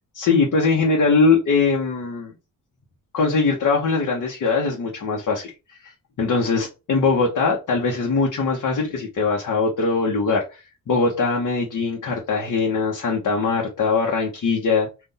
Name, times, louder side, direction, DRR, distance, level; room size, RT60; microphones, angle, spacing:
voice 1, 0.1-2.3 3.1-5.5 5.8-5.9 6.2-10.6 10.9-14.9, left 4 dB, 60° left, 1.0 m, -21 dB
3.8 x 2.6 x 4.1 m
cardioid pair, 120°, 34 cm